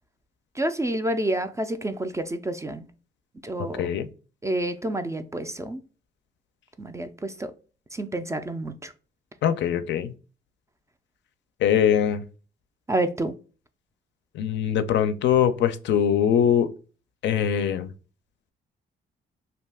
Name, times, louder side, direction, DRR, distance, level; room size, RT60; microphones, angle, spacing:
voice 1, 0.6-2.9 3.4-4.0 4.4-5.8 6.8-7.5 7.9-8.9 12.9-13.3, right 1 dB, 15° right, 0.3 m, -29 dB
voice 2, 9.4-10.1 11.6-12.2 14.4-16.7 17.2-17.9, left 9 dB, 65° left, 0.4 m, -22 dB
2.6 x 2.3 x 3.3 m
cardioid pair, 90°, 20 cm